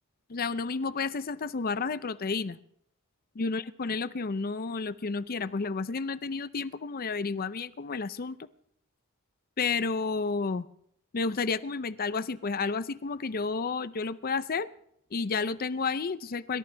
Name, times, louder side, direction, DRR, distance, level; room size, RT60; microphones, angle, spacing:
voice 1, 0.3-2.6 3.4-8.4 9.6-10.7 11.1-14.7 15.1-16.6, left 4 dB, 45° left, 14 dB, 0.6 m, -31 dB
27.5 x 13.0 x 3.4 m, 0.69 s
head